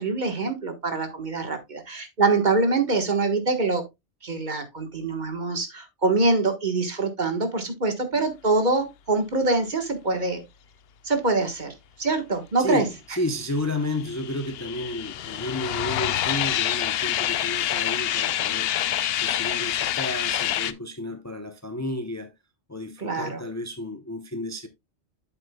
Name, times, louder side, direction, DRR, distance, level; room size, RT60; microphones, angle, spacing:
voice 1, 0.0-3.8 4.2-10.4 11.0-11.7 12.0-12.8 23.0-23.4, right 3 dB, 45° right, 1.5 m, -24 dB
voice 2, 12.6-18.7 19.2-22.3 22.7-24.7, left 1 dB, 20° left, 0.6 m, -32 dB
sound 1, 13.6-20.7, left 11 dB, 65° left, 0.7 m, -27 dB
8.3 x 7.8 x 2.2 m
omnidirectional pair, 1.1 m